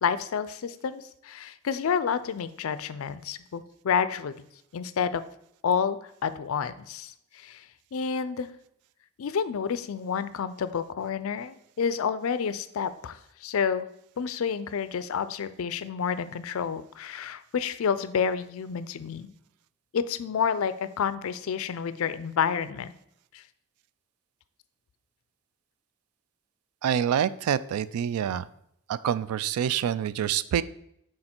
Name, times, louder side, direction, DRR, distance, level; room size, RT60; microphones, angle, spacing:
voice 1, 0.0-4.3 4.7-5.2 5.6-7.6 7.9-8.5 9.2-13.9 14.2-19.3 19.9-22.9 23.3-23.4, left 6 dB, 70° left, 14 dB, 0.4 m, -29 dB
voice 2, 26.8-28.4 28.9-30.6, right 9 dB, 85° right, 17 dB, 0.3 m, -26 dB
6.5 x 3.8 x 4.4 m, 0.74 s
head